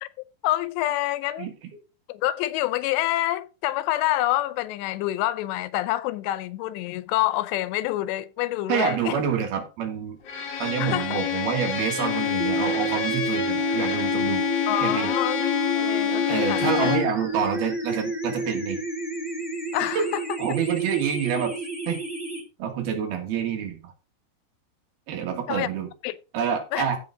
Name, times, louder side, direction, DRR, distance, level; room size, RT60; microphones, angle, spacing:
voice 1, 0.0-1.5 2.1-9.2 10.8-11.2 14.7-15.4 15.7-16.9 19.7-20.4 25.5-25.7 26.0-26.2 26.7-26.9, left 15 dB, 85° left, 2.8 m, -27 dB
voice 2, 8.7-10.2 10.6-14.4 14.8-15.1 16.3-18.8 20.0-20.1 20.4-21.5 21.9-22.0 22.6-23.9 25.1-25.9 26.3-27.0, right 7 dB, 65° right, 3.5 m, -27 dB
Bowed string instrument, 10.3-17.2, left 10 dB, 65° left, 1.6 m, -27 dB
sound 1, 12.4-22.4, right 2 dB, ahead, 3.4 m, -30 dB
15.5 x 5.6 x 3.8 m
omnidirectional pair, 5.0 m